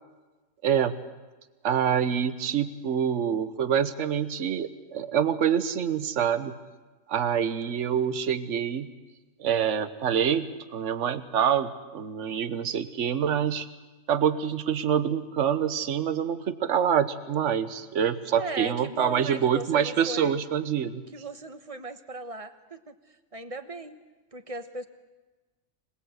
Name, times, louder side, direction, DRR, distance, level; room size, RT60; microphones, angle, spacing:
voice 1, 0.6-1.0 1.6-6.6 7.1-8.9 9.4-13.7 14.1-21.0, right 8 dB, 65° right, 12 dB, 1.3 m, -26 dB
voice 2, 18.3-20.4 21.1-24.0 24.3-24.9, right 2 dB, 30° right, 9 dB, 1.1 m, -37 dB
25.5 x 20.0 x 8.1 m, 1.2 s
omnidirectional pair, 1.4 m